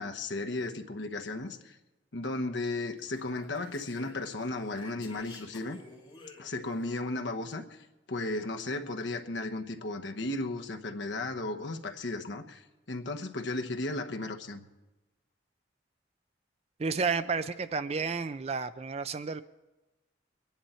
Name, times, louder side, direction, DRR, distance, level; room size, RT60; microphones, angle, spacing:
voice 1, 0.0-1.8 2.1-5.8 6.4-14.6, left 2 dB, 75° left, 5 dB, 1.1 m, -35 dB
Speech, 3.0-6.9, left 3 dB, 25° left, 2.3 m, -52 dB
voice 2, 16.8-19.4, right 5 dB, 35° right, 13 dB, 0.4 m, -31 dB
22.0 x 10.5 x 4.4 m, 1.1 s
head